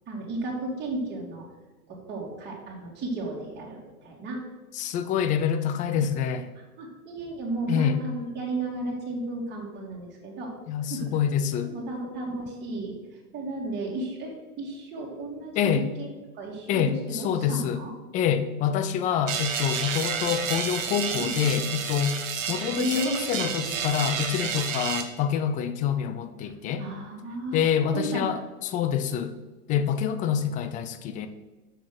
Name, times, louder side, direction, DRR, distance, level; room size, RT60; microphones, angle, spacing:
voice 1, 0.1-1.4 1.9-4.4 6.8-10.5 10.9-11.0 11.6-12.9 13.3-14.3 14.6-15.7 16.0-16.1 16.3-17.9 21.2-21.3 22.8-23.8 26.4-26.5 26.8-27.6 27.9-28.5, right 1 dB, 25° right, -4 dB, 2.3 m, -33 dB
voice 2, 4.7-6.5 7.7-8.0 10.7-11.7 15.5-15.9 16.7-17.8 18.1-22.2 22.5-26.9 27.5-29.3 29.7-31.3, left 8 dB, 20° left, 10 dB, 0.4 m, -26 dB
sound 1, 19.3-25.0, right 7 dB, 60° right, 1.3 m, -30 dB
6.6 x 6.0 x 6.0 m, 1.2 s
hypercardioid pair, 115°, 44 cm